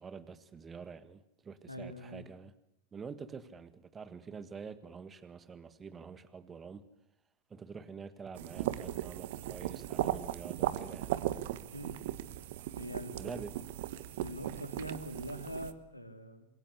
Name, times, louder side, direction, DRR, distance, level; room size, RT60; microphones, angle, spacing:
voice 1, 0.0-2.5 2.9-6.8 7.5-11.2 13.2-13.6, right 5 dB, 20° right, 1.7 m, -47 dB
voice 2, 1.7-2.2 11.7-11.9 12.7-13.4 14.2-16.5, equal, 90° left, 3.0 m, -43 dB
sound 1, 8.3-15.7, right 13 dB, 55° right, 1.3 m, -37 dB
27.0 x 22.0 x 8.3 m
figure-of-eight pair, 90°, 0 cm